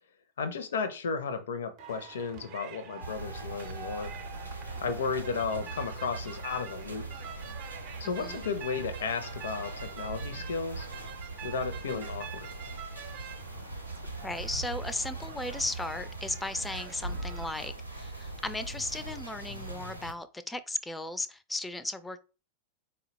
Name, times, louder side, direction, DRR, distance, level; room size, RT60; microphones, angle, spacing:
voice 1, 0.4-4.1 4.8-7.1 8.0-10.9 11.4-12.5, left 5 dB, 65° left, 0.5 m, -34 dB
sound 1, 1.8-17.6, right 8 dB, 45° right, 0.6 m, -46 dB
sound 2, 3.0-20.1, right 2 dB, 90° right, 0.7 m, -41 dB
voice 2, 8.0-8.4 14.2-22.2, left 2 dB, 10° left, 0.3 m, -36 dB
3.9 x 2.1 x 3.9 m
figure-of-eight pair, 90°, 0 cm